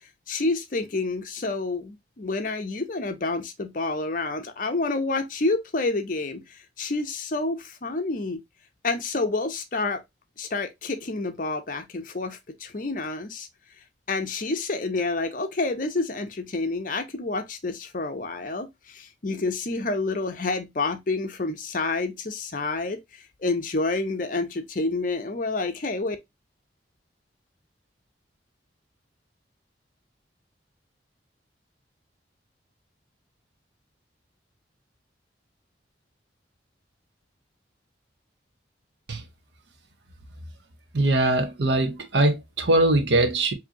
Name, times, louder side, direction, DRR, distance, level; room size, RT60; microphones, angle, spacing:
voice 1, 0.3-8.4 8.8-10.0 10.4-13.5 14.1-26.2, left 3 dB, 45° left, 0.6 m, -28 dB
voice 2, 40.9-43.5, right 2 dB, 70° right, 0.8 m, -21 dB
4.8 x 2.8 x 2.8 m
head